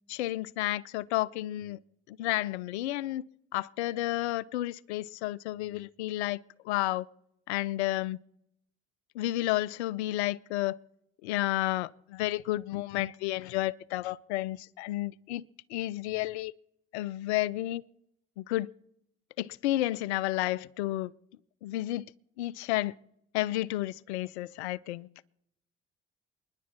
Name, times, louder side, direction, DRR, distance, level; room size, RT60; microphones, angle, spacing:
voice 1, 0.1-1.8 2.1-3.2 3.5-7.1 7.5-8.2 9.1-10.8 11.2-15.4 15.7-16.5 16.9-17.8 18.4-18.7 19.4-21.1 21.6-22.0 22.4-22.9 23.3-25.1, left 16 dB, 80° left, 0.5 m, -31 dB
28.5 x 10.5 x 4.4 m
hypercardioid pair, 45°, 33 cm